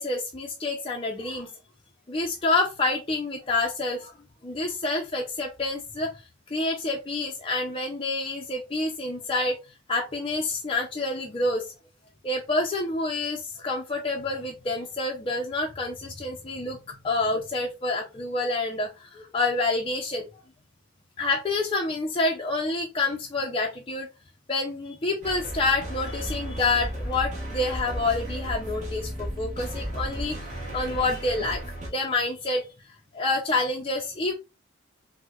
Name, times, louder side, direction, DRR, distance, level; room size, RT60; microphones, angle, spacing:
voice 1, 0.0-1.5 2.1-4.1 4.4-6.1 6.5-9.6 9.9-11.7 12.2-20.3 21.2-24.1 24.5-31.6 31.9-32.7 33.1-34.4, left 2 dB, 25° left, 1 dB, 0.4 m, -28 dB
sound 1, 25.2-31.9, equal, 35° right, 1.0 m, -34 dB
4.4 x 2.1 x 2.3 m, 0.26 s
head